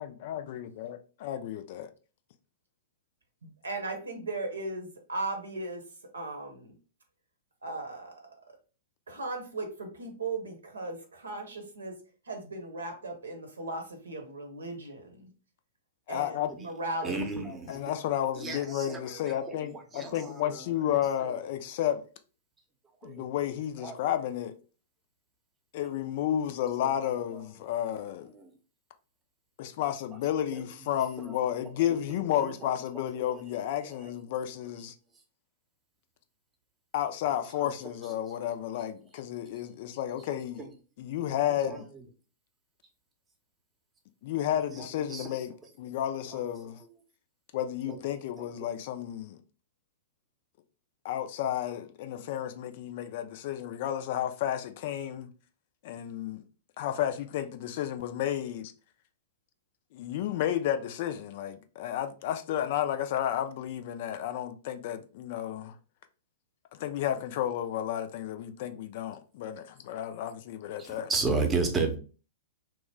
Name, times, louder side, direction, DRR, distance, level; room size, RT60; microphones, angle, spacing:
voice 1, 0.0-1.9 16.1-16.5 17.7-19.7 20.1-22.0 23.0-24.5 25.7-28.3 29.6-34.9 36.9-40.6 41.0-41.9 44.2-46.8 47.5-49.4 51.0-55.3 55.8-56.4 56.8-58.7 59.9-65.7 66.7-71.1, left 11 dB, 50° left, 0.3 m, -32 dB
voice 2, 3.4-5.8 6.1-6.7 7.6-8.1 8.5-8.6 9.1-11.9 12.3-15.3 16.1-17.4, right 2 dB, 75° right, 0.9 m, -37 dB
voice 3, 17.0-17.9 18.4-20.1 20.4-21.0 23.0-23.2 23.8-23.9 26.0-26.4 26.8-27.1 33.8-33.9 38.3-38.4 40.6-40.7 41.6-41.7 44.6-44.7 45.1-45.3 71.1-72.0, right 4 dB, 15° right, 0.7 m, -33 dB
2.9 x 2.1 x 3.4 m
figure-of-eight pair, 105°, 0 cm